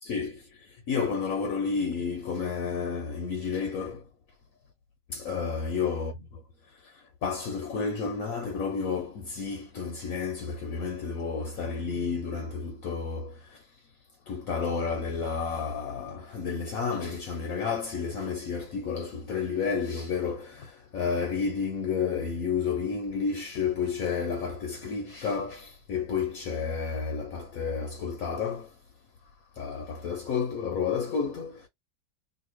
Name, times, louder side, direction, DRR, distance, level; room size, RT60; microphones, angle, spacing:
voice 1, 0.0-0.5 0.9-4.0 5.1-6.1 6.8-6.9 7.2-13.6 14.3-28.7 29.6-31.7, left 5 dB, 65° left, 1.0 m, -31 dB
2.8 x 2.6 x 3.0 m
omnidirectional pair, 1.8 m